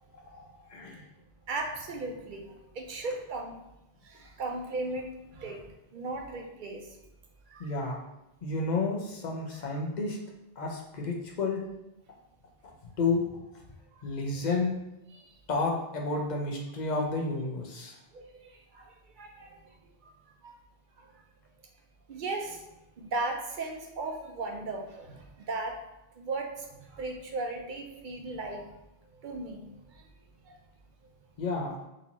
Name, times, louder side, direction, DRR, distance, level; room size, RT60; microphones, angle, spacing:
voice 1, 0.1-1.1 7.6-8.1 8.4-10.2 10.6-11.6 12.6-13.6 14.0-14.7 15.5-18.0 31.4-31.7, left 3 dB, 45° left, 0 dB, 0.7 m, -31 dB
voice 2, 1.5-3.6 4.0-5.6 5.9-6.9 7.5-7.9 15.2-15.3 18.1-19.6 20.4-20.5 21.0-21.1 22.1-22.6 23.0-25.8 26.2-28.7 29.2-29.7 30.5-30.6, right 2 dB, 55° right, 2 dB, 0.6 m, -37 dB
3.8 x 2.7 x 2.9 m, 0.91 s
omnidirectional pair, 1.1 m